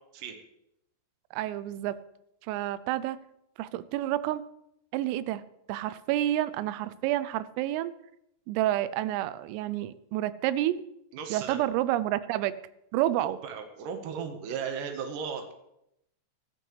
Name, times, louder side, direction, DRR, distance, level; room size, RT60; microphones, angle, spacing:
voice 1, 1.3-2.0 2.4-3.2 3.6-4.4 4.9-5.4 5.7-7.9 8.5-10.8 11.3-12.6 12.9-13.4, right 14 dB, 90° right, 15 dB, 3.3 m, -29 dB
voice 2, 11.1-11.6 13.1-15.5, right 6 dB, 70° right, 4 dB, 2.1 m, -36 dB
14.5 x 14.0 x 3.3 m, 0.81 s
omnidirectional pair, 5.8 m